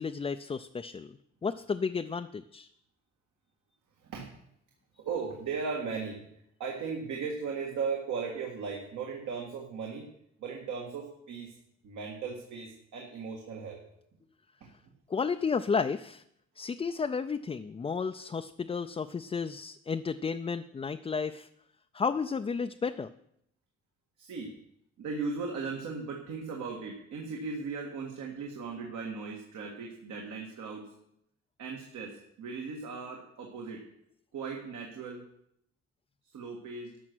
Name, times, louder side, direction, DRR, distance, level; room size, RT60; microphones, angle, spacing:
voice 1, 0.0-2.7 15.1-16.2 16.6-21.5 21.9-23.1, left 5 dB, 20° left, 7 dB, 0.4 m, -32 dB
voice 2, 5.0-6.2 6.6-10.1 10.4-11.6 11.8-13.8 14.6-14.9 24.2-24.6 25.0-30.9 31.6-33.8 34.3-35.2 36.2-36.9, right 5 dB, 75° right, 0 dB, 1.9 m, -37 dB
12.5 x 6.6 x 6.1 m, 0.74 s
cardioid pair, 90°, 30 cm